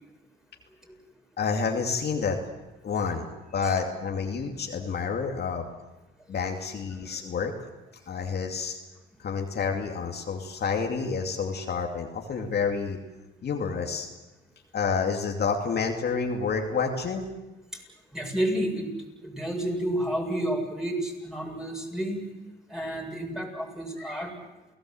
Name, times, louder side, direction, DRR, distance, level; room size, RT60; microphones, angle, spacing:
voice 1, 1.4-2.4 2.8-3.3 3.5-5.7 6.3-7.5 8.1-8.8 9.2-13.0 13.4-14.1 14.7-17.3, left 5 dB, 55° left, 2 dB, 2.6 m, -29 dB
voice 2, 18.1-18.9 19.2-22.2 22.7-24.3, right 1 dB, 5° right, 1 dB, 7.5 m, -30 dB
29.0 x 18.0 x 7.9 m, 1.0 s
cardioid pair, 90°, 20 cm